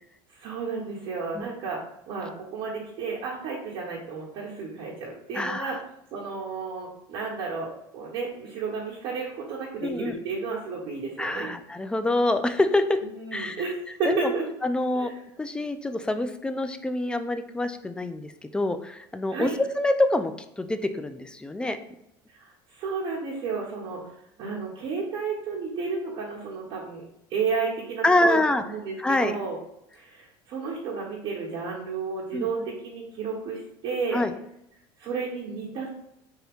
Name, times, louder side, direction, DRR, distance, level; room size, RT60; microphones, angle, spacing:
voice 1, 0.4-1.8 2.1-5.8 6.1-11.5 13.0-14.4 14.9-15.1 19.3-19.6 22.3-24.0 24.4-27.0 27.3-29.5 29.9-34.2 35.0-35.9, right 4 dB, 50° right, -5 dB, 1.1 m, -32 dB
voice 2, 5.3-5.8 9.8-10.1 11.2-13.0 13.3-13.6 14.1-14.3 14.6-15.1 15.4-21.8 28.0-28.6 29.0-29.4 32.3-32.5 34.1-34.3, left 2 dB, 10° left, 9 dB, 0.3 m, -26 dB
3.3 x 2.7 x 3.5 m, 0.79 s
supercardioid pair, 90°, 12 cm